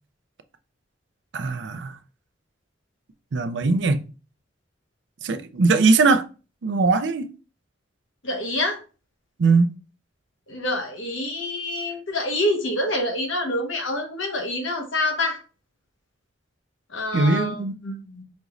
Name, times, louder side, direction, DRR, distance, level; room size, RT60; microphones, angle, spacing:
voice 1, 1.3-2.0 3.3-4.0 5.2-6.2 6.6-7.3 9.4-9.7 17.1-17.7, right 3 dB, 65° right, 0.5 m, -20 dB
voice 2, 8.2-8.8 10.5-15.4 16.9-18.2, left 1 dB, 90° left, 1.2 m, -27 dB
5.1 x 3.0 x 2.5 m
head